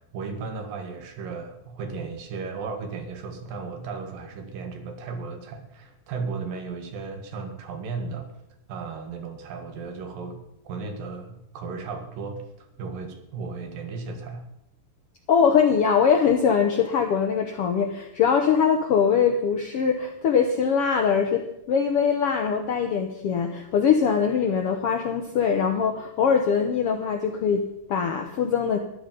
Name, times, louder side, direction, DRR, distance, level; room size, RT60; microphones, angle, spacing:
voice 1, 0.0-8.3 8.7-10.4 10.6-14.4, right 4 dB, 85° right, 6 dB, 3.4 m, -35 dB
voice 2, 15.3-28.8, left 6 dB, 75° left, 4 dB, 1.3 m, -22 dB
13.5 x 12.0 x 5.2 m, 0.82 s
omnidirectional pair, 3.9 m